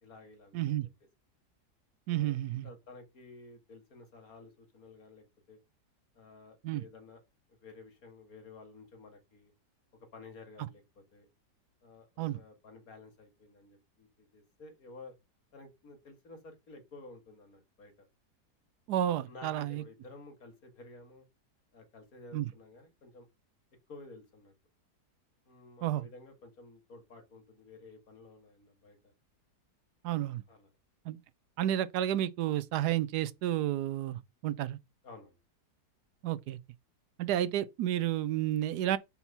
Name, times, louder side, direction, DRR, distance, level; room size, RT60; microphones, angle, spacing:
voice 1, 0.0-0.9 2.1-2.4 2.6-5.6 6.1-7.2 7.5-9.5 10.1-11.3 11.8-12.1 12.3-15.1 15.5-18.1 19.3-21.3 21.7-23.3 23.9-24.5 25.5-29.1 30.5-30.7 35.0-35.4 37.2-37.4, left 3 dB, 60° left, 2.3 m, -53 dB
voice 2, 0.5-0.9 2.1-2.7 6.6-6.8 12.2-12.4 18.9-19.8 22.3-22.5 25.8-26.0 30.0-30.4 31.1-31.2 31.6-34.8 36.2-36.6 37.2-39.0, right 12 dB, 80° right, 1.2 m, -31 dB
5.6 x 4.4 x 5.3 m
omnidirectional pair, 1.8 m